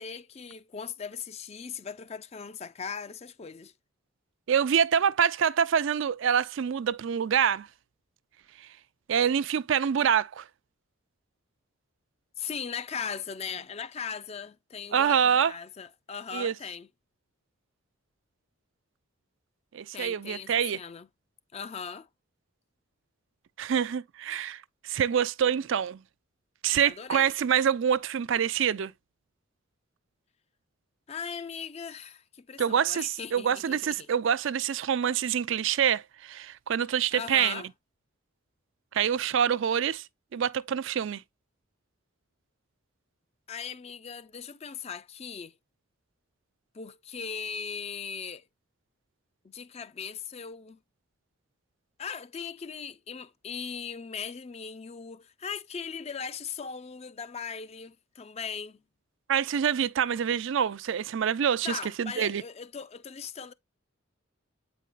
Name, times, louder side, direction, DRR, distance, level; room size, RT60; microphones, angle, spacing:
voice 1, 0.0-3.7 12.4-16.9 19.9-21.1 21.5-22.1 26.8-27.3 31.1-34.1 37.1-37.7 43.5-45.6 46.7-48.5 49.4-50.8 52.0-58.8 61.6-63.5, left 6 dB, 30° left, 0.4 m, -39 dB
voice 2, 4.5-7.7 9.1-10.5 14.9-15.5 16.3-16.5 19.7-20.8 23.6-26.0 26.6-28.9 32.6-37.6 38.9-40.0 40.3-41.2 59.3-62.4, right 8 dB, 60° right, 0.4 m, -26 dB
8.3 x 5.2 x 2.5 m
head